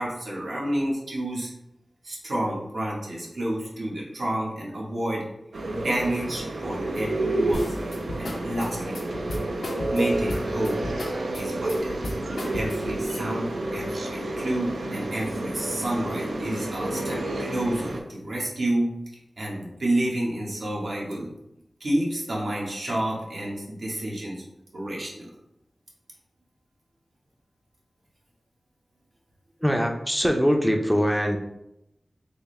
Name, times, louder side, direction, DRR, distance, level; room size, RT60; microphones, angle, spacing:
voice 1, 0.0-1.5 2.0-5.2 5.7-7.1 7.4-7.6 8.2-8.9 9.9-10.8 11.3-11.9 12.5-18.9 19.4-21.3 21.8-24.4 24.7-25.3, right 1 dB, 65° right, -3 dB, 1.1 m, -29 dB
sound 1, 5.5-18.0, right 2 dB, 85° right, 0.4 m, -30 dB
sound 2, 7.5-13.0, left 1 dB, 75° left, 0.5 m, -35 dB
voice 2, 29.6-31.4, equal, 5° right, 3 dB, 0.4 m, -22 dB
3.5 x 2.6 x 3.1 m, 0.83 s
wide cardioid pair, 65°, 0 cm